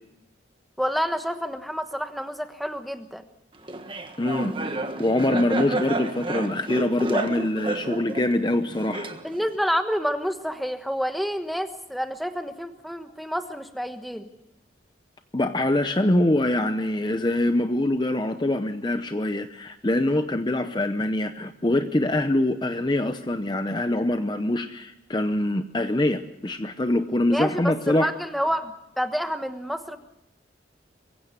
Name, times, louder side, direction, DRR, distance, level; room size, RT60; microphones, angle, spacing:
voice 1, 0.8-3.2 9.2-14.3 27.3-30.0, equal, ahead, 7 dB, 1.2 m, -28 dB
Laughter, 3.7-9.6, right 2 dB, 25° right, 1.5 m, -31 dB
voice 2, 4.2-4.5 5.0-9.1 15.3-28.1, left 1 dB, 25° left, 8 dB, 0.7 m, -24 dB
23.5 x 16.0 x 8.1 m, 0.92 s
head